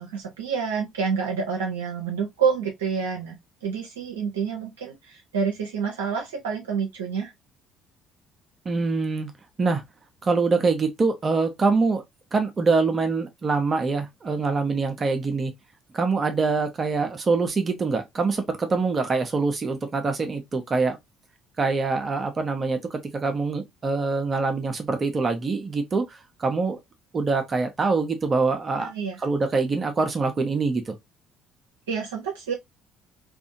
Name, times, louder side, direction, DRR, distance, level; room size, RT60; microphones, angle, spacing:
voice 1, 0.0-3.4 3.6-7.3 28.8-29.2 31.9-32.5, right 6 dB, 80° right, 0.6 m, -28 dB
voice 2, 8.6-9.3 9.6-9.8 10.2-12.0 12.3-15.5 15.9-21.0 21.6-26.8 27.1-28.9 29.2-30.9, right 4 dB, 35° right, 0.7 m, -24 dB
2.6 x 2.5 x 2.6 m
hypercardioid pair, 55°, 0 cm